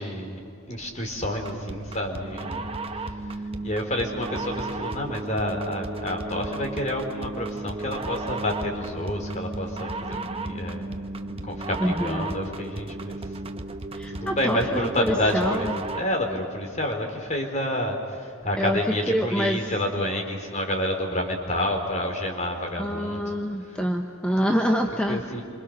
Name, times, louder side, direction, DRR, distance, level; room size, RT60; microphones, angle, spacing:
voice 1, 0.0-2.7 3.2-3.3 3.6-10.9 11.5-13.4 14.1-15.7 15.9-23.2 23.7-23.8 24.9-25.4, left 1 dB, 35° left, 2 dB, 3.8 m, -29 dB
sound 1, 1.2-16.2, right 2 dB, 25° right, 1.0 m, -34 dB
voice 2, 11.8-12.3 13.9-15.8 18.6-19.6 22.8-25.2, equal, 5° left, 2 dB, 1.0 m, -26 dB
27.5 x 26.0 x 6.6 m, 2.6 s
head